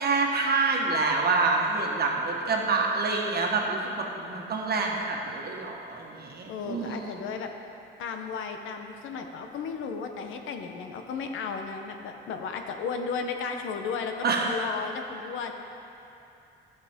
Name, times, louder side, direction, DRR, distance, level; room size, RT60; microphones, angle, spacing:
voice 1, 0.0-7.1 14.2-14.4, right 3 dB, 55° right, 0 dB, 1.4 m, -27 dB
voice 2, 6.5-7.5 8.0-15.5, left 5 dB, 85° left, 5 dB, 0.8 m, -34 dB
14.5 x 5.8 x 3.6 m, 2.9 s
cardioid pair, 90°, 20 cm